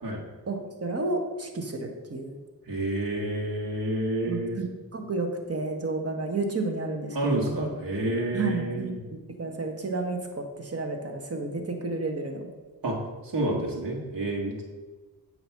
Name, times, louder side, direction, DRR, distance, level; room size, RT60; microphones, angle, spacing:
voice 1, 0.5-2.4 4.3-7.7 8.3-12.5, right 3 dB, 35° right, 4 dB, 1.2 m, -31 dB
voice 2, 2.7-4.6 7.1-9.0 12.8-13.0 13.2-14.6, right 1 dB, 55° right, -2 dB, 1.6 m, -29 dB
7.7 x 2.9 x 5.8 m, 1.3 s
cardioid pair, 60°, 42 cm